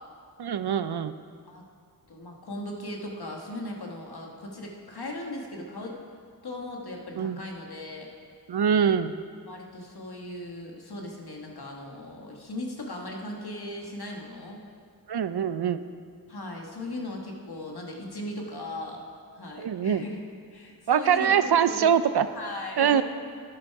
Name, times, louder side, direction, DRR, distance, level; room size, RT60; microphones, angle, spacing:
voice 1, 0.4-1.1 7.2-7.4 8.5-9.2 15.1-15.8 19.6-20.0 20.9-22.3 22.8-23.0, right 8 dB, 75° right, 12 dB, 0.6 m, -23 dB
voice 2, 2.1-6.0 6.4-8.1 9.5-14.6 16.3-19.0 19.3-20.2 20.5-23.0, left 1 dB, 70° left, 0 dB, 1.7 m, -38 dB
11.5 x 11.0 x 4.7 m, 2.1 s
wide cardioid pair, 60°, 39 cm